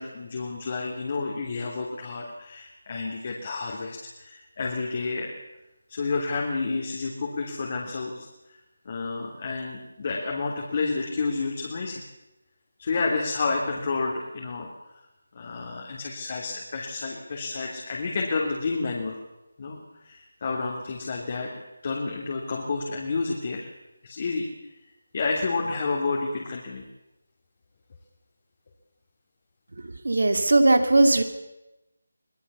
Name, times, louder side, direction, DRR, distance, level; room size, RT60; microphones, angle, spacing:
voice 1, 0.0-5.3 5.9-8.3 8.8-12.0 12.8-14.7 15.3-19.2 19.6-21.5 21.8-23.7 24.0-24.5 25.1-26.8, left 4 dB, 40° left, -1 dB, 3.3 m, -30 dB
voice 2, 29.8-31.2, right 2 dB, 70° right, 7 dB, 2.8 m, -19 dB
24.0 x 17.5 x 7.0 m, 0.98 s
figure-of-eight pair, 165°, 0 cm